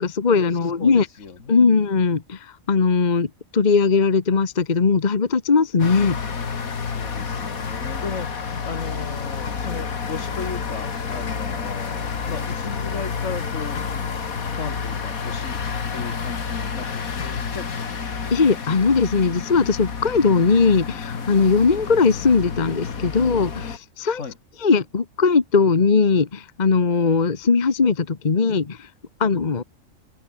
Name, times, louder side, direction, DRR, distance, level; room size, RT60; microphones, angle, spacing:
voice 1, 0.0-1.1 1.5-2.4 2.7-3.3 3.5-6.2 18.3-24.2 24.6-28.8 29.2-29.6, left 4 dB, 35° left, 1.3 m, -19 dB
voice 2, 0.8-1.7 6.8-13.8 14.5-15.6 15.9-17.2 17.5-18.2 24.1-24.4, left 5 dB, 60° left, 2.2 m, -35 dB
sound 1, 5.8-23.8, left 5 dB, 85° left, 2.4 m, -29 dB
open air
omnidirectional pair, 1.4 m